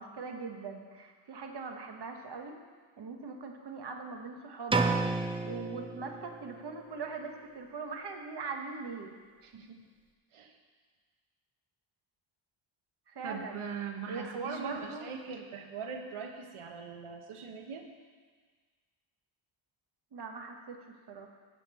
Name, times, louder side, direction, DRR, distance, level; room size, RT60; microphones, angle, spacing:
voice 1, 0.0-2.6 3.0-4.9 5.4-9.1 13.1-13.6 14.1-15.2 20.1-20.8 21.1-21.3, right 4 dB, 50° right, 3 dB, 1.1 m, -41 dB
sound 1, 4.7-6.6, right 3 dB, 10° right, 0.3 m, -31 dB
voice 2, 9.4-9.8 10.3-10.5 13.2-17.9, right 5 dB, 80° right, 4 dB, 1.1 m, -41 dB
10.0 x 5.2 x 7.4 m, 1.5 s
wide cardioid pair, 165°, 49 cm